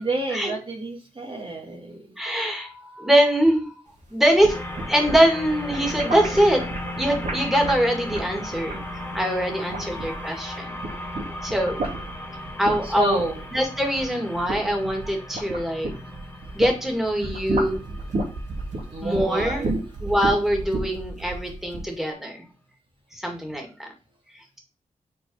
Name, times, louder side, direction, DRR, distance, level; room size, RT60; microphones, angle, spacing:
voice 1, 0.0-2.0 9.5-10.1 12.8-13.4 18.9-19.7, right 2 dB, 40° right, 1 dB, 1.9 m, -29 dB
voice 2, 2.2-3.7 4.1-4.6 4.9-6.6 7.0-8.8 9.1-10.7 11.0-11.2 11.4-12.0 12.6-13.2 13.5-15.9 16.5-17.8 19.0-19.7 20.0-22.4 23.1-23.9, equal, ahead, 2 dB, 2.4 m, -23 dB
sound 1, 4.2-10.4 10.7-16.8 17.1-21.9, right 2 dB, 65° right, 2.1 m, -32 dB
sound 2, 4.5-21.0, left 1 dB, 15° left, 2.0 m, -37 dB
6.4 x 4.5 x 5.5 m, 0.32 s
cardioid pair, 85°, 13 cm